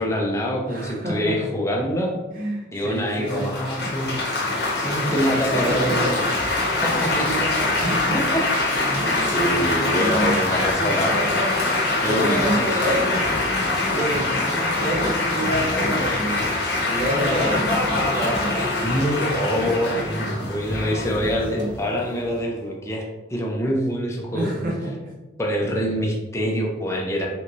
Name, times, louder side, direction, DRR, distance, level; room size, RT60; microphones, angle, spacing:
voice 1, 0.0-2.1 2.7-6.2 6.8-7.3 7.8-8.8 9.2-11.3 12.0-13.1 17.3-17.5 18.8-23.0 23.3-24.5 25.4-27.3, equal, 15° left, -1 dB, 0.5 m, -25 dB
voice 2, 0.7-1.5 2.3-4.0 5.0-5.2 5.5-6.2 7.1-8.2 8.9-9.3 9.9-10.4 12.1-13.1 13.9-14.4 14.8-16.5 16.8-18.7 20.3-20.5 21.5-21.7 24.3-25.1, right 1 dB, 45° right, -3 dB, 0.6 m, -28 dB
Laughter / Applause / Chatter, 3.3-22.4, left 2 dB, 60° left, 1.0 m, -24 dB
3.4 x 2.9 x 2.6 m, 1.1 s
head